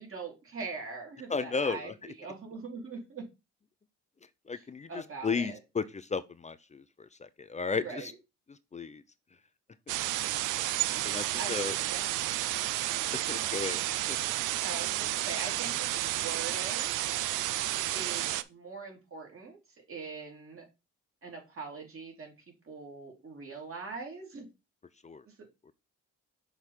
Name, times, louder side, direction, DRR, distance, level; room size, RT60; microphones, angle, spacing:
voice 1, 0.0-3.2 4.5-5.6 7.8-8.2 10.9-12.3 14.6-17.0 17.9-19.6 19.9-20.6 21.2-22.3 22.6-24.5 25.2-25.3, right 4 dB, 45° right, 3.0 m, -42 dB
voice 2, 1.3-1.9 4.5-4.9 5.2-5.8 6.1-6.6 7.4-8.0 8.7-9.0 11.0-11.7 13.3-13.8 14.1-14.2 25.0-25.2, left 5 dB, 25° left, 0.5 m, -33 dB
sound 1, 9.9-18.4, right 14 dB, 85° right, 0.5 m, -31 dB
6.3 x 3.4 x 5.7 m
cardioid pair, 90°, 30 cm